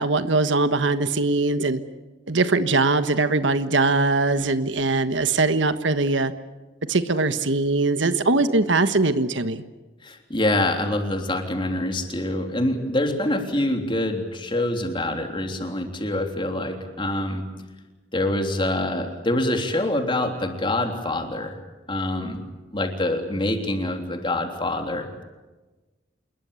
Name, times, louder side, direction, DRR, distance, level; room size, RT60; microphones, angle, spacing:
voice 1, 0.0-1.8 2.3-6.3 6.9-9.6, right 3 dB, 85° right, 10 dB, 1.4 m, -21 dB
voice 2, 10.0-17.4 18.1-21.6 21.9-22.4 22.7-25.2, left 1 dB, 25° left, 4 dB, 3.5 m, -25 dB
27.5 x 21.5 x 8.4 m, 1.2 s
head